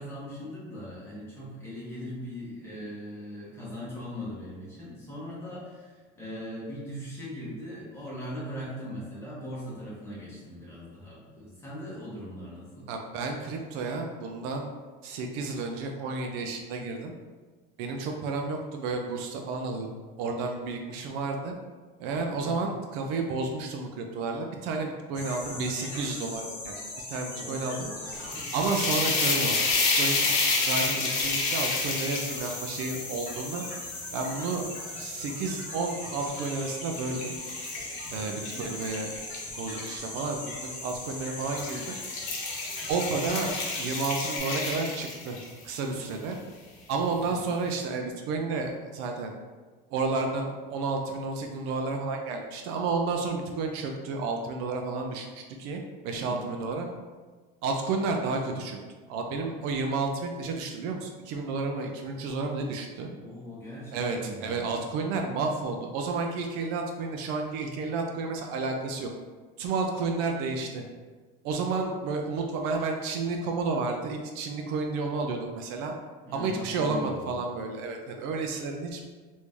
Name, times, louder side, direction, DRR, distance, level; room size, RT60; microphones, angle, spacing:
voice 1, 0.0-12.9 22.4-22.7 25.1-25.7 27.3-28.5 38.3-38.6 47.4-47.5 56.2-56.5 63.2-64.7 76.2-77.3, equal, 10° left, -8 dB, 0.9 m, -40 dB
voice 2, 12.9-14.7 15.0-17.1 17.8-19.9 20.2-21.5 22.0-26.8 27.1-27.8 28.5-29.6 30.0-30.3 30.6-33.6 34.1-34.7 35.0-37.3 38.1-39.1 39.6-41.8 42.9-45.4 45.6-46.4 46.9-49.3 49.9-56.9 57.6-58.8 59.1-63.1 63.9-69.1 69.6-70.8 71.4-75.9 76.3-79.1, right 3 dB, 60° right, 2 dB, 0.4 m, -31 dB
sound 1, 25.1-44.4, left 2 dB, 40° left, 1.1 m, -39 dB
sound 2, 28.1-35.4 35.9-39.9 40.8-41.1 41.4-45.6, left 3 dB, 70° left, 0.8 m, -30 dB
3.1 x 2.6 x 3.4 m, 1.4 s
cardioid pair, 175°, 20 cm